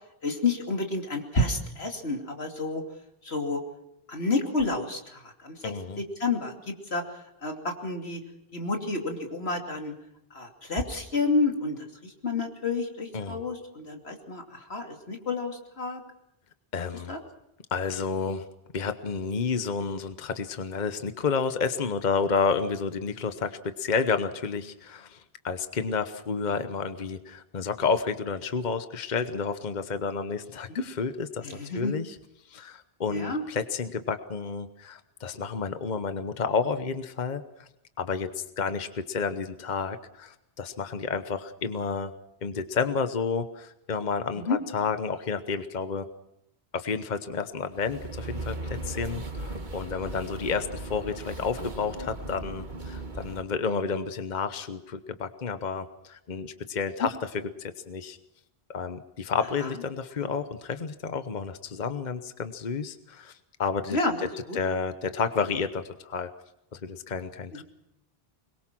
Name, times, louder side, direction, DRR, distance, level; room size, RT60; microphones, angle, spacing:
voice 1, 0.2-2.8 3.2-3.6 4.1-6.5 6.9-7.0 7.4-8.2 8.5-9.9 10.3-11.8 12.0-14.4 14.7-16.0 17.1-17.2 30.7-30.8 31.4-32.0 33.1-33.4 44.4-44.6 63.9-64.6 67.5-67.6, left 3 dB, 90° left, 3 dB, 3.0 m, -30 dB
voice 2, 5.6-6.0 13.1-13.4 16.7-17.1 17.7-18.5 18.7-31.5 31.7-32.2 32.5-37.7 38.0-42.1 42.4-46.1 46.7-58.2 58.7-64.0 64.5-66.3 66.7-67.6, left 5 dB, 45° left, 10 dB, 1.1 m, -30 dB
sound 1, 47.6-53.4, right 2 dB, 50° right, 1.7 m, -37 dB
24.0 x 21.5 x 6.0 m, 0.83 s
omnidirectional pair, 1.0 m